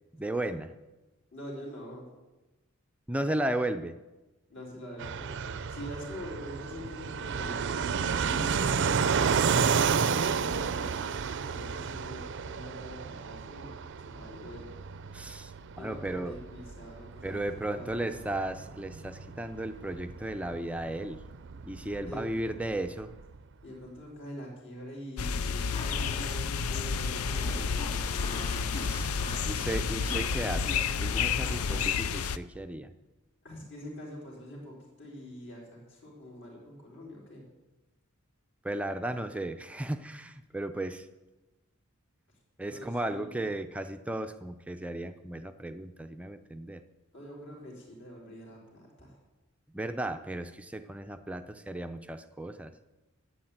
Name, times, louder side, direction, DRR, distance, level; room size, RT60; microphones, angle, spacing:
voice 1, 0.1-0.7 3.1-3.9 15.1-15.5 15.8-16.4 17.2-21.2 21.6-23.1 28.8-29.1 29.4-32.9 38.6-41.1 42.6-46.8 49.7-52.7, right 1 dB, 5° right, 8 dB, 0.5 m, -35 dB
voice 2, 1.3-2.1 4.5-11.0 11.4-13.7 14.0-14.8 15.8-18.2 22.0-22.3 23.6-29.2 33.4-37.4 42.7-43.4 47.1-49.1, equal, 60° left, -3 dB, 4.0 m, -45 dB
Fixed-wing aircraft airplane, 5.0-23.4, right 6 dB, 55° right, 0.5 m, -32 dB
sound 1, 25.2-32.4, left 6 dB, 85° left, 0.5 m, -30 dB
Fart, 25.7-31.8, left 1 dB, 35° left, 3.7 m, -44 dB
12.0 x 8.6 x 8.8 m, 1.1 s
head